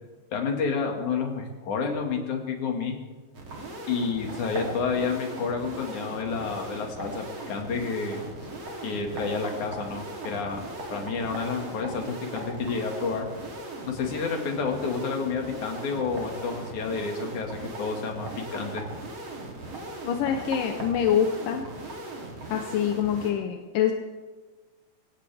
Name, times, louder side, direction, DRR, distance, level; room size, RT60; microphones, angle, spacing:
voice 1, 0.3-3.0 3.9-8.2 8.8-10.6 10.9-13.3 13.9-18.8, left 5 dB, 65° left, 2 dB, 3.4 m, -30 dB
sound 1, 3.3-23.3, right 2 dB, 45° right, 4.0 m, -38 dB
voice 2, 20.0-21.7 22.5-23.9, left 9 dB, 85° left, 4 dB, 2.6 m, -25 dB
24.0 x 17.5 x 3.5 m, 1.3 s
omnidirectional pair, 3.7 m